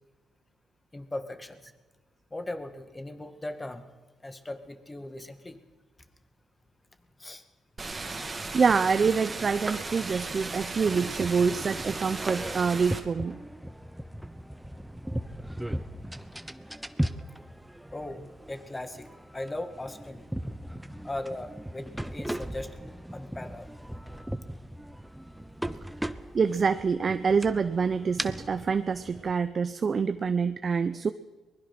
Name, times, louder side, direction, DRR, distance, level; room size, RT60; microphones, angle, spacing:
voice 1, 0.9-1.7 2.3-3.8 4.2-5.6 7.2-7.4 10.1-10.3 17.9-19.1 19.3-20.2 21.0-22.7 23.1-23.7 30.9-31.0, left 1 dB, 20° left, 8 dB, 2.0 m, -38 dB
sound 1, 7.8-13.0, right 3 dB, 25° right, 2.4 m, -36 dB
voice 2, 8.5-13.4 26.3-31.1, right 5 dB, 40° right, 11 dB, 0.7 m, -26 dB
sound 2, 10.9-29.3, equal, 5° right, 1.0 m, -38 dB
23.0 x 20.5 x 6.0 m, 1.2 s
cardioid pair, 90°, 0 cm